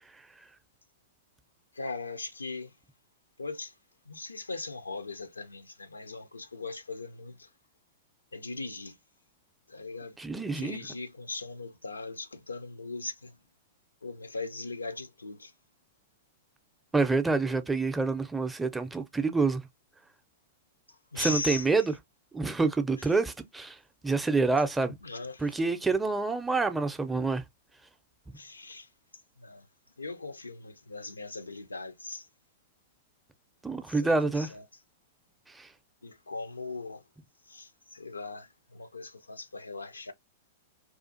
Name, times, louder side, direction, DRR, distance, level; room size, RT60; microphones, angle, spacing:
voice 1, 1.7-2.7 3.4-3.7 4.1-7.5 8.3-9.0 9.7-10.2 10.5-13.4 14.0-15.5 20.9-21.7 25.0-25.6 28.3-28.9 29.4-29.7 30.0-32.3 33.9-34.6 36.0-37.0 37.5-40.1, left 3 dB, 90° left, 0.4 m, -39 dB
voice 2, 10.2-10.8 16.9-19.6 21.2-21.9 22.3-25.0 25.4-27.4 33.6-34.5 35.5-35.7, right 3 dB, 10° right, 0.4 m, -27 dB
2.4 x 2.3 x 2.5 m
hypercardioid pair, 105°, 0 cm